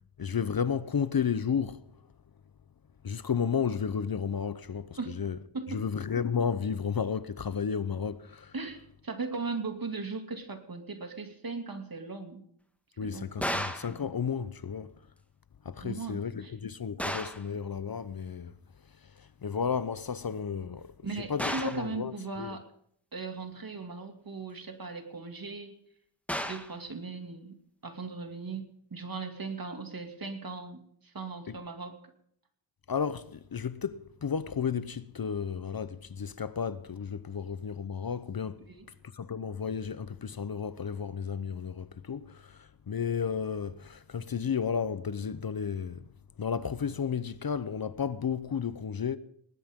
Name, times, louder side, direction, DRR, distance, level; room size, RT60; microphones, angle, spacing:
voice 1, 0.2-1.8 3.0-5.4 5.7-8.5 13.0-14.9 15.6-18.5 19.0-22.6 31.5-31.6 32.9-38.6 39.1-46.1 46.4-49.2, left 6 dB, 50° left, 0.8 m, -33 dB
voice 2, 5.5-5.8 8.5-12.4 13.0-13.6 15.8-16.5 21.0-22.6 23.1-25.8 26.4-27.6 27.8-32.0 38.7-38.9, right 4 dB, 45° right, 2.6 m, -38 dB
sound 1, 13.4-14.0 17.0-17.5 21.4-21.9 26.3-26.8, equal, 5° left, 1.7 m, -33 dB
19.5 x 19.5 x 3.7 m
wide cardioid pair, 85°, 47 cm